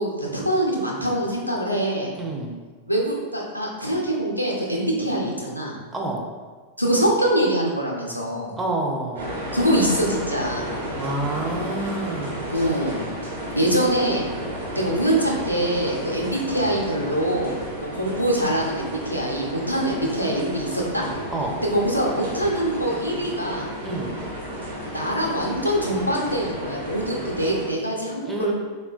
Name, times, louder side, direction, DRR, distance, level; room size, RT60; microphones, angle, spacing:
voice 1, 0.0-2.1 2.9-5.7 6.8-8.5 9.5-10.7 12.5-13.1 13.6-14.3 14.8-17.5 17.9-21.1 21.7-23.7 24.9-28.5, right 1 dB, 90° left, -2 dB, 0.4 m, -24 dB
voice 2, 2.2-2.5 5.9-6.2 8.6-9.3 10.9-12.4 21.3-21.6 23.8-24.2 28.2-28.5, right 2 dB, 10° right, -2 dB, 0.5 m, -28 dB
sound 1, 9.1-27.7, right 1 dB, 65° right, 0.9 m, -32 dB
3.6 x 2.1 x 2.3 m, 1.4 s
figure-of-eight pair, 90°, 0 cm